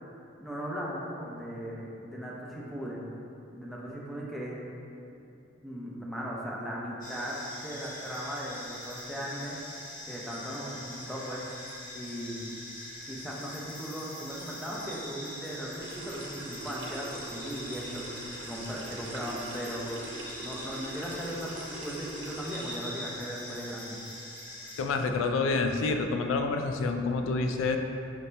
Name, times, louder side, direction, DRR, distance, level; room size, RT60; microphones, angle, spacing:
voice 1, 0.4-3.1 3.5-4.6 5.6-9.6 10.1-11.5 11.9-12.5 13.1-19.9 20.4-24.0, equal, ahead, -5 dB, 0.5 m, -38 dB
sound 1, 7.0-24.8, left 1 dB, 45° left, 0.9 m, -43 dB
sound 2, 15.8-22.8, right 2 dB, 70° right, 0.6 m, -43 dB
voice 2, 24.8-27.8, left 3 dB, 90° left, 5 dB, 0.3 m, -28 dB
5.1 x 2.8 x 3.3 m, 2.6 s
head